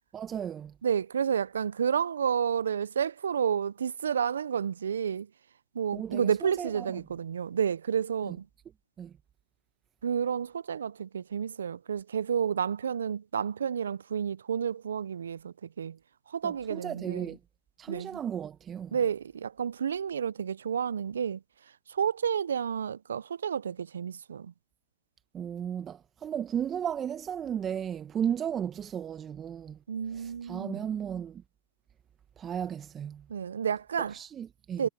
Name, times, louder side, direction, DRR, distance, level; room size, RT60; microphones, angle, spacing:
voice 1, 0.1-0.7 5.9-6.9 8.2-8.3 9.0-9.1 16.4-17.4 17.8-19.0 25.3-29.8 30.1-31.4 32.4-33.3 34.1-34.8, right 9 dB, 25° right, 1.3 m, -35 dB
voice 2, 0.8-5.3 5.7-8.5 10.0-16.0 16.3-17.4 17.9-18.2 18.9-24.5 29.9-30.9 33.3-34.2 34.8-34.9, right 7 dB, 80° right, 0.4 m, -30 dB
hypercardioid pair, 105°, 0 cm